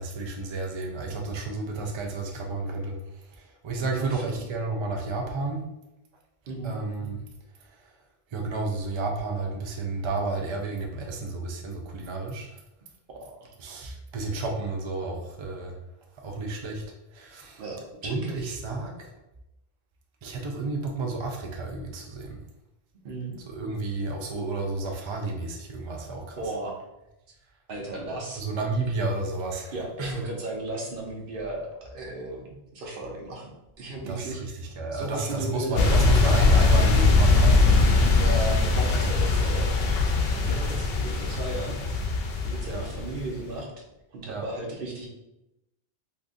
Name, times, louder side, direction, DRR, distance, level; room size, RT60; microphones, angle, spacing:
voice 1, 0.0-3.0 3.4-5.6 6.6-7.3 8.3-12.5 13.6-15.8 16.2-16.8 17.1-17.6 18.0-19.1 20.2-22.4 23.5-26.4 28.3-30.2 34.1-38.1 42.7-42.8 44.3-44.4, right 3 dB, 45° right, 1 dB, 0.4 m, -31 dB
voice 2, 3.8-4.4 6.5-6.8 13.1-13.5 17.6-18.6 23.0-23.4 26.4-26.8 27.7-28.4 29.7-33.5 33.8-34.6 34.9-36.1 38.1-39.7 40.5-41.8 42.4-43.8 44.1-45.1, right 2 dB, 65° right, 0 dB, 0.9 m, -35 dB
sound 1, 35.8-43.4, left 3 dB, 75° left, 0.8 m, -21 dB
3.6 x 2.6 x 2.5 m, 0.91 s
omnidirectional pair, 1.0 m